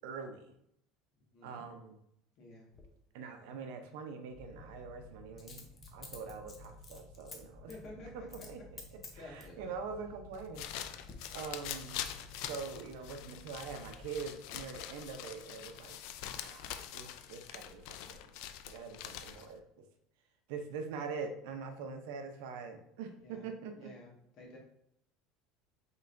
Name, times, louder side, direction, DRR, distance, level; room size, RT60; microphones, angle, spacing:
voice 1, 0.0-0.5 1.4-2.0 3.1-7.8 8.1-10.7 11.3-12.0 12.4-18.3 18.6-19.8 20.5-23.9, right 5 dB, 80° right, 6 dB, 0.7 m, -44 dB
voice 2, 1.3-1.6 2.4-2.7 7.7-8.5 9.1-9.7 23.2-23.5 23.7-24.1 24.4-24.6, left 1 dB, 50° left, -2 dB, 1.6 m, -51 dB
Coin (dropping), 2.7-2.9 5.4-7.4 7.7-7.9 8.3-8.5 8.8-9.6 10.2-10.8 11.1-11.2, left 4 dB, 30° left, 0.8 m, -51 dB
sound 1, 4.3-14.2, left 1 dB, 35° right, 0.9 m, -55 dB
sound 2, 10.3-19.6, left 11 dB, 65° left, 0.4 m, -44 dB
5.3 x 3.8 x 2.6 m, 0.75 s
cardioid pair, 145°, 0 cm